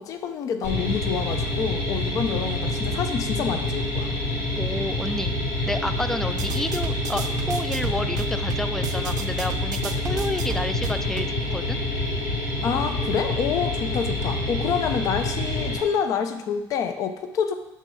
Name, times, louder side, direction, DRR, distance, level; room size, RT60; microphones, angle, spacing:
voice 1, 0.0-4.1 12.6-17.5, left 7 dB, 45° left, 8 dB, 0.8 m, -27 dB
sound 1, 0.6-15.8, left 1 dB, 75° left, 4.2 m, -27 dB
voice 2, 4.6-5.4 5.7-9.8 10.0-11.8, left 1 dB, 5° left, 11 dB, 0.4 m, -30 dB
sound 2, 6.3-11.4, right 10 dB, 50° right, 0.6 m, -35 dB
9.0 x 6.3 x 5.6 m, 0.94 s
cardioid pair, 165°, 8 cm